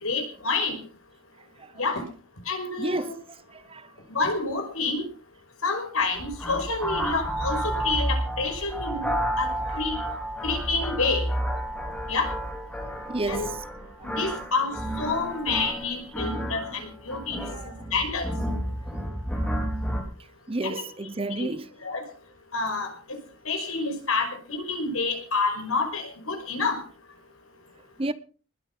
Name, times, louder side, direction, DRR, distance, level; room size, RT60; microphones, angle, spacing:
voice 1, 0.0-0.8 1.8-2.0 2.5-3.1 4.1-5.0 5.6-10.0 10.4-11.3 12.1-12.3 13.3-13.5 14.0-17.4 17.9-18.3 20.6-20.8 21.4-21.5 21.8-22.0 22.5-22.9 23.5-26.8, left 3 dB, 75° left, 5.5 m, -28 dB
voice 2, 2.8-3.9 13.1-13.6 14.0-14.1 17.5-17.7 20.5-21.7 28.0-28.1, right 2 dB, 25° right, 0.8 m, -31 dB
sound 1, 6.1-20.0, right 1 dB, 5° left, 3.9 m, -31 dB
20.0 x 9.6 x 6.0 m
head